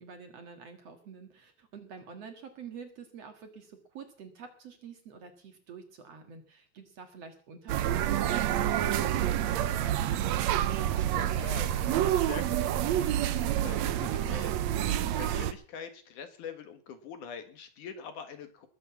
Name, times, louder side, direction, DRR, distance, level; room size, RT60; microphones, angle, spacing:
voice 1, 0.0-10.3 14.8-15.1, right 5 dB, 50° right, 6 dB, 2.5 m, -47 dB
sound 1, 7.7-15.5, right 11 dB, 75° right, 1.7 m, -28 dB
voice 2, 11.1-14.8 15.2-18.7, left 7 dB, 65° left, 9 dB, 2.9 m, -44 dB
21.0 x 7.7 x 7.2 m, 0.41 s
omnidirectional pair, 4.1 m